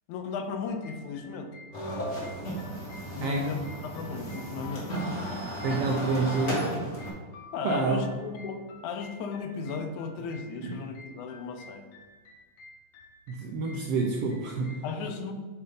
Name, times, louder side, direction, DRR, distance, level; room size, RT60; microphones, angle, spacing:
voice 1, 0.1-1.5 3.1-5.3 7.5-11.9 14.8-15.3, left 5 dB, 90° left, 6 dB, 2.2 m, -36 dB
sound 1, 0.6-14.8, left 2 dB, 60° left, 1.8 m, -51 dB
sound 2, 1.7-7.1, equal, 30° left, 1.7 m, -34 dB
voice 2, 3.2-3.6 5.6-6.7 7.6-8.1 10.6-10.8 13.3-14.8, right 3 dB, 80° right, 1 dB, 1.3 m, -28 dB
8.2 x 4.0 x 5.1 m, 1.4 s
omnidirectional pair, 3.4 m